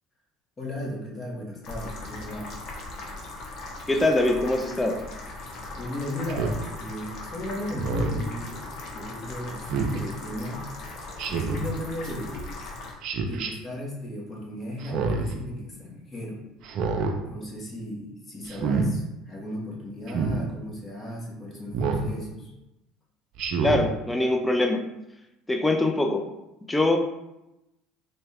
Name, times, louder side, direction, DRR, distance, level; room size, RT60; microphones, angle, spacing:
voice 1, 0.6-2.5 5.8-10.7 11.3-12.4 13.3-16.4 17.2-22.5, left 1 dB, 30° left, -3 dB, 1.3 m, -36 dB
sound 1, 1.6-12.9, left 2 dB, 55° left, 0.9 m, -39 dB
voice 2, 3.9-5.1 23.6-24.9 25.5-26.3 26.7-27.0, left 2 dB, 10° left, 3 dB, 0.4 m, -23 dB
Speech synthesizer, 6.3-6.6 7.7-8.2 9.7-10.0 11.2-11.7 13.0-13.5 14.8-15.3 16.6-17.1 18.5-18.9 20.1-20.4 21.7-22.1 23.4-23.9, right 4 dB, 60° right, 0.5 m, -27 dB
3.9 x 2.3 x 3.4 m, 0.92 s
hypercardioid pair, 80°, 0 cm